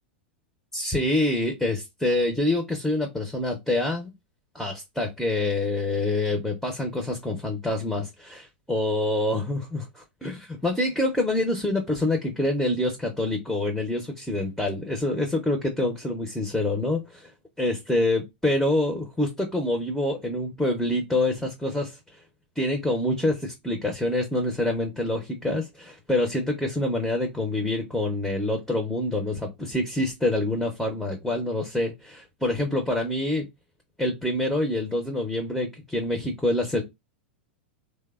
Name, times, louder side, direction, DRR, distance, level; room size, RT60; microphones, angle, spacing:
voice 1, 0.7-4.1 4.5-17.3 17.6-22.0 22.6-33.5 34.0-36.8, left 1 dB, ahead, 0.5 m, -26 dB
3.0 x 2.0 x 2.2 m
hypercardioid pair, 110°, 6 cm